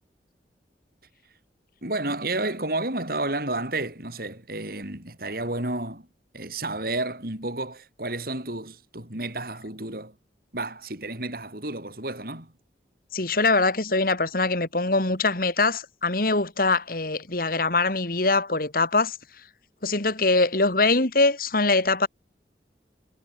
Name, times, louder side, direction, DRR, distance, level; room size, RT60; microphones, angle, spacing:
voice 1, 1.8-6.1 6.3-10.1 10.5-12.5, right 2 dB, 55° right, 7.5 m, -31 dB
voice 2, 13.1-19.2 19.8-22.1, left 3 dB, 55° left, 2.7 m, -23 dB
head